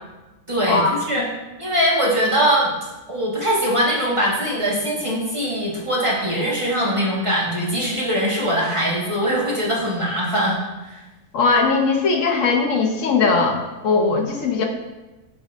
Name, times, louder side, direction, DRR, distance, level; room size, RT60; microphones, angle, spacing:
voice 1, 0.5-1.2 1.6-2.7 3.1-10.6 10.9-11.0, equal, 25° right, -5 dB, 1.4 m, -21 dB
voice 2, 11.3-14.7, left 4 dB, 65° left, 2 dB, 1.1 m, -19 dB
8.4 x 6.3 x 2.5 m, 1.1 s
omnidirectional pair, 1.5 m